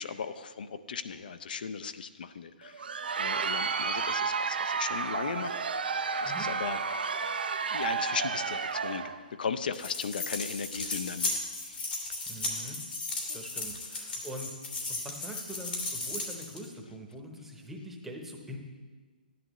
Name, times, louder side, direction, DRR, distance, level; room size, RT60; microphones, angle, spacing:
voice 1, 0.0-2.9 3.2-5.6 6.2-7.2 7.7-9.0 9.4-11.9 13.3-13.4, left 6 dB, 65° left, 12 dB, 0.5 m, -37 dB
Crowd, 2.6-9.2, right 5 dB, 80° right, 0.6 m, -31 dB
sound 1, 9.7-16.7, left 2 dB, 85° left, 2.4 m, -35 dB
voice 2, 12.3-12.9 13.3-14.6 14.9-18.6, equal, 5° right, 2 dB, 0.8 m, -43 dB
11.5 x 10.0 x 3.1 m, 1.4 s
hypercardioid pair, 155°, 5 cm